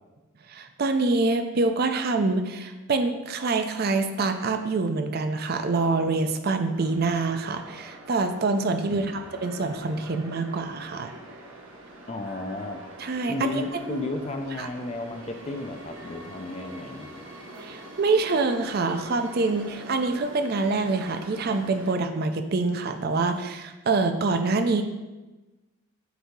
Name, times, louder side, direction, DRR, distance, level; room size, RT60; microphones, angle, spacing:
voice 1, 0.5-9.1 9.4-11.1 13.0-13.6 13.9-14.0 14.6-14.7 17.6-24.8, right 3 dB, 45° right, 7 dB, 0.4 m, -25 dB
sound 1, 6.7-21.9, right 1 dB, 75° right, 1.2 m, -44 dB
voice 2, 8.9-9.3 12.1-12.8 13.3-17.2, left 2 dB, 30° left, 6 dB, 0.4 m, -33 dB
7.9 x 2.7 x 4.6 m, 1.1 s
head